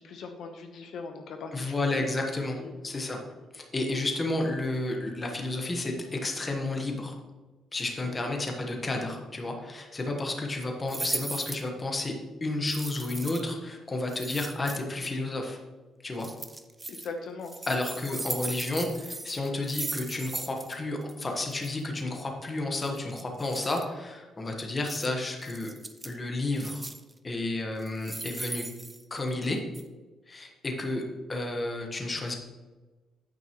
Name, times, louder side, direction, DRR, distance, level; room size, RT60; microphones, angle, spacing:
voice 1, 0.0-2.1 2.6-2.7 3.4-3.5 8.0-8.2 16.9-17.6 18.1-18.3, left 4 dB, 55° left, 4 dB, 0.9 m, -41 dB
voice 2, 1.5-3.2 3.5-7.2 7.7-12.1 12.4-15.6 16.0-16.3 17.7-25.7 26.0-26.8 27.2-28.6 29.1-29.6 30.3-31.0 31.3-32.3, left 2 dB, 20° left, 2 dB, 1.2 m, -31 dB
sound 1, 10.9-11.7 12.7-13.5 14.1-15.1 16.2-17.1 17.4-20.8 21.0-21.1 21.4-21.7 22.8-23.8 24.8-25.1 25.4-26.2 26.5-27.1 27.8-29.4 29.7-29.8, right 2 dB, 10° right, 0.5 m, -38 dB
9.2 x 9.2 x 3.0 m, 1.2 s
cardioid pair, 170°, 0 cm